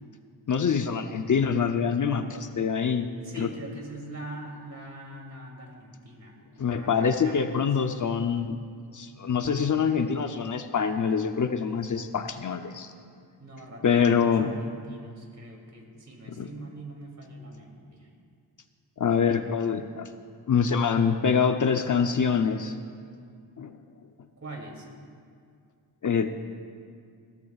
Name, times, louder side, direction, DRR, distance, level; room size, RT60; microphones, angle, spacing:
voice 1, 0.5-3.1 3.4-3.5 6.6-8.6 8.9-12.9 13.8-14.5 16.4-16.5 19.0-20.1 20.5-22.8 23.6-23.8 26.0-26.3, left 6 dB, 45° left, 7 dB, 0.7 m, -25 dB
voice 2, 3.2-7.9 13.4-18.1 24.4-24.9, right 1 dB, 40° right, 0 dB, 2.9 m, -43 dB
21.5 x 16.5 x 2.4 m, 2.2 s
wide cardioid pair, 105°, 41 cm